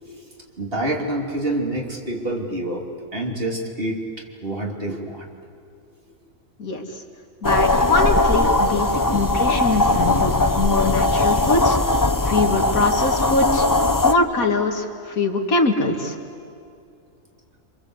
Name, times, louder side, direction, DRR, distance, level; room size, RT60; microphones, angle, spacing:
voice 1, 0.6-5.3, right 1 dB, 40° right, 0 dB, 3.4 m, -27 dB
voice 2, 7.4-11.8 12.2-13.6 14.0-16.2, left 3 dB, 75° left, 3 dB, 2.6 m, -23 dB
sound 1, 7.4-14.1, left 2 dB, 20° left, 0.6 m, -19 dB
27.5 x 27.0 x 8.1 m, 2.5 s
omnidirectional pair, 1.5 m